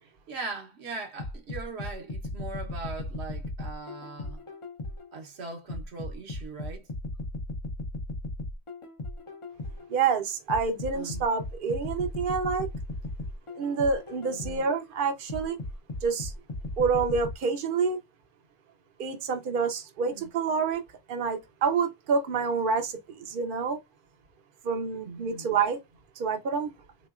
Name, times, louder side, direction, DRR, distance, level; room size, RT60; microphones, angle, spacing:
voice 1, 0.0-4.4 5.1-6.9 10.9-11.3 14.3-14.6 20.1-20.3 25.0-25.5, right 3 dB, 70° right, 1.2 m, -40 dB
sound 1, 1.2-5.2 5.7-10.0 10.5-14.8 15.3-17.3, left 2 dB, 35° left, 0.6 m, -36 dB
voice 2, 9.9-12.7 13.6-15.6 16.0-16.3 16.8-18.0 19.0-20.8 21.1-23.8 24.6-25.8 26.2-26.7, right 5 dB, 55° right, 0.8 m, -28 dB
3.7 x 3.0 x 2.3 m
omnidirectional pair, 1.1 m